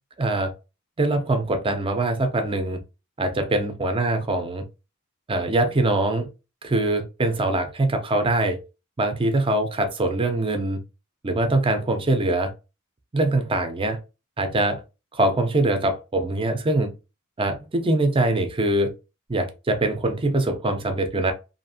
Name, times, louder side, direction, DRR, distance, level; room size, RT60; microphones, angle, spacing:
voice 1, 0.2-0.5 1.0-2.8 3.2-4.6 5.3-6.3 6.6-8.6 9.0-10.8 11.2-12.5 13.1-14.0 14.4-14.8 15.1-16.9 17.4-18.9 19.3-21.3, right 2 dB, 25° right, 0.5 m, -23 dB
2.7 x 2.5 x 2.7 m
head